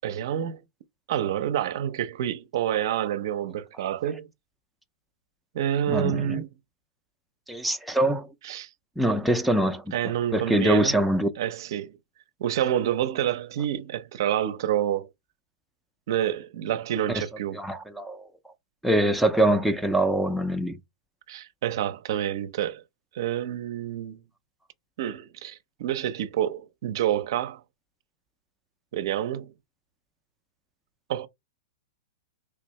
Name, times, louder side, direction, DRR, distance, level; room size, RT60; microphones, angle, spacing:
voice 1, 0.0-0.6 1.1-4.3 5.5-6.5 8.4-8.7 9.9-11.0 11.4-12.0 12.4-15.1 16.1-17.6 21.3-22.8 23.1-24.2 25.0-27.6 28.9-29.5 31.1-31.3, right 11 dB, 60° right, 0.5 m, -28 dB
voice 2, 5.9-6.4 7.5-8.3 9.0-9.9 10.3-11.3 17.1-17.2 17.5-18.3 18.8-20.8, right 1 dB, ahead, 0.4 m, -24 dB
3.4 x 2.7 x 3.1 m
hypercardioid pair, 135°, 2 cm